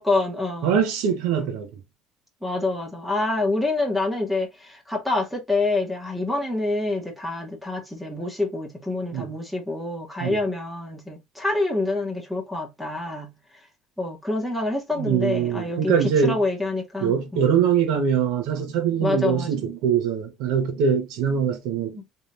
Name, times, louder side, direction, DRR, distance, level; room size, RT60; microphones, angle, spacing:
voice 1, 0.0-0.8 2.4-13.3 14.0-15.9 16.2-17.5 19.0-19.5 22.0-22.1, left 2 dB, 5° right, 1.5 m, -26 dB
voice 2, 0.6-1.7 9.1-9.3 10.2-10.4 15.0-16.4 17.0-22.0, right 7 dB, 80° right, 1.3 m, -23 dB
3.5 x 3.4 x 2.8 m
cardioid pair, 120°, 0 cm